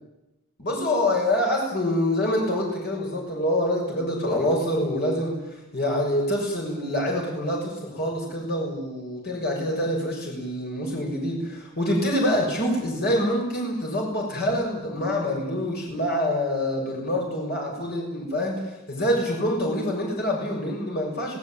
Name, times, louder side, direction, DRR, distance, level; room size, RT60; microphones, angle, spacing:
voice 1, 0.6-5.3 5.7-18.6 18.9-21.4, left 1 dB, 50° left, -1 dB, 6.5 m, -26 dB
26.0 x 17.5 x 9.1 m, 0.97 s
head